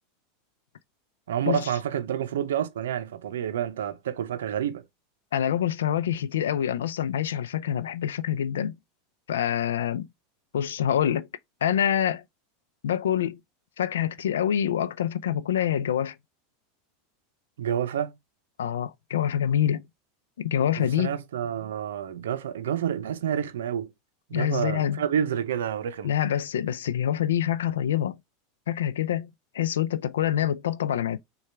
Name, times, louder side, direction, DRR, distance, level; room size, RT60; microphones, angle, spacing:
voice 1, 1.3-4.8 17.6-18.1 20.8-23.9 24.3-26.1, right 9 dB, 80° right, 0.5 m, -29 dB
voice 2, 5.3-8.7 9.3-10.1 10.5-11.3 11.6-12.2 12.8-13.4 13.8-16.1 18.6-19.9 20.4-21.2 24.3-25.0 26.0-28.2 28.7-31.2, left 10 dB, 85° left, 0.4 m, -26 dB
6.5 x 2.3 x 3.3 m
hypercardioid pair, 100°, 0 cm